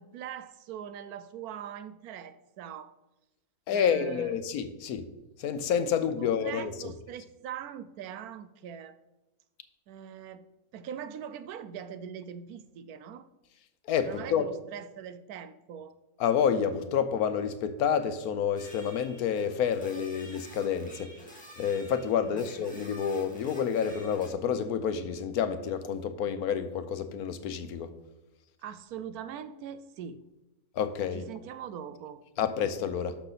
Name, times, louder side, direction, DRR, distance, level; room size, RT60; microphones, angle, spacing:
voice 1, 0.0-2.9 3.7-4.5 6.2-8.9 9.9-10.5 10.7-13.3 14.0-15.9 22.2-22.5 28.6-30.2 31.1-32.2, right 8 dB, 85° right, 1.2 m, -42 dB
voice 2, 3.7-5.1 5.4-6.9 13.9-14.5 16.2-21.1 21.6-27.9 30.7-31.3 32.4-33.2, left 7 dB, 85° left, 1.2 m, -29 dB
sound 1, 18.6-24.3, equal, 5° left, 2.3 m, -50 dB
12.0 x 6.5 x 4.1 m
omnidirectional pair, 1.5 m